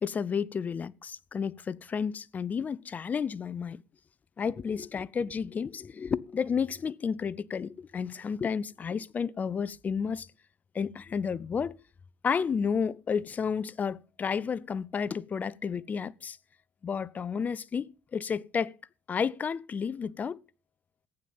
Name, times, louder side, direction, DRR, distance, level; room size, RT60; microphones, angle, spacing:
voice 1, 0.0-3.8 4.4-10.3 10.7-11.8 12.2-16.4 16.8-18.7 19.1-20.4, left 6 dB, 35° left, 0.7 m, -31 dB
15.5 x 9.4 x 5.5 m
supercardioid pair, 80°, 5 cm